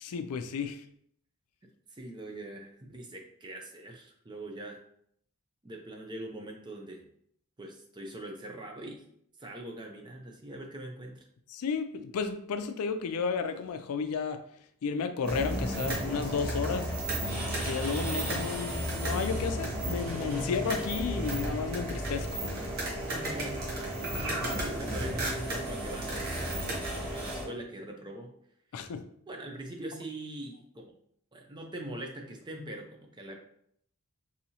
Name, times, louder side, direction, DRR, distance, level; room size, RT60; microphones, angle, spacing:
voice 1, 0.0-0.9 11.5-14.4 14.8-16.9 17.5-22.4 28.7-29.0, left 5 dB, 80° left, 9 dB, 0.4 m, -33 dB
voice 2, 1.9-4.8 5.6-7.0 7.6-9.0 9.4-11.3 20.4-20.5 23.1-23.6 24.1-26.4 27.1-28.3 29.3-30.9 31.3-33.4, right 1 dB, 20° right, 2 dB, 0.5 m, -42 dB
sound 1, 15.2-27.5, right 1 dB, 45° right, 1.1 m, -33 dB
4.1 x 2.7 x 2.8 m, 0.67 s
head